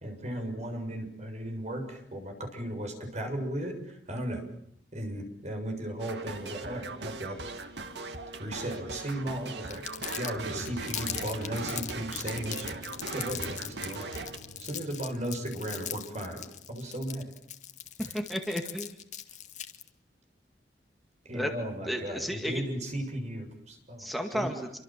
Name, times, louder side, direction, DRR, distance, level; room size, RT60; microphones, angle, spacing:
voice 1, 0.0-4.4 4.9-7.4 8.4-9.8 10.2-12.8 13.1-14.2 14.6-17.3 18.0-18.2 21.3-24.1 24.3-24.5, right 1 dB, 40° right, 5 dB, 7.0 m, -36 dB
sound 1, 6.0-14.4, right 3 dB, 75° right, 2.4 m, -39 dB
Crumpling crinkling, 9.7-19.9, left 10 dB, 45° left, 2.2 m, -39 dB
sound 2, 10.3-16.3, left 1 dB, 75° left, 7.0 m, -48 dB
voice 2, 18.1-18.9 21.3-21.5 21.9-22.6 24.0-24.8, equal, ahead, 4 dB, 2.1 m, -32 dB
28.0 x 25.0 x 7.6 m, 0.70 s
head